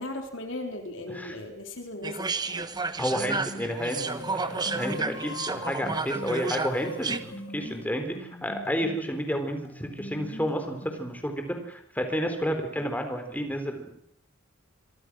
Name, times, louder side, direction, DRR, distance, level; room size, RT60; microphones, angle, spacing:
voice 1, 0.0-2.7, left 1 dB, 70° left, 5 dB, 3.8 m, -37 dB
sound 1, 2.0-7.2, right 3 dB, 20° right, 1.3 m, -32 dB
voice 2, 3.0-13.9, equal, 10° left, 6 dB, 4.1 m, -31 dB
sound 2, 3.2-11.2, equal, 35° left, 7.8 m, -43 dB
sound 3, 3.7-8.4, left 2 dB, 85° left, 5.1 m, -42 dB
26.5 x 24.5 x 6.3 m, 0.66 s
head